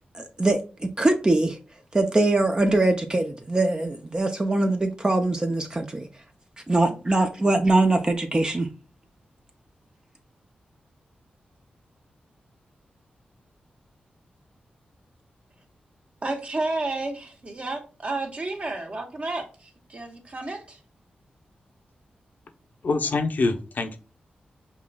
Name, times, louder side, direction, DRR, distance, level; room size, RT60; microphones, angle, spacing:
voice 1, 0.1-1.6 1.9-6.1 6.7-8.7, right 2 dB, 25° right, 5 dB, 0.5 m, -22 dB
voice 2, 16.2-20.8, right 2 dB, 40° right, 3 dB, 1.1 m, -31 dB
voice 3, 22.8-24.0, left 3 dB, 65° left, 6 dB, 0.7 m, -25 dB
5.5 x 2.4 x 2.3 m, 0.35 s
cardioid pair, 75°, 3 cm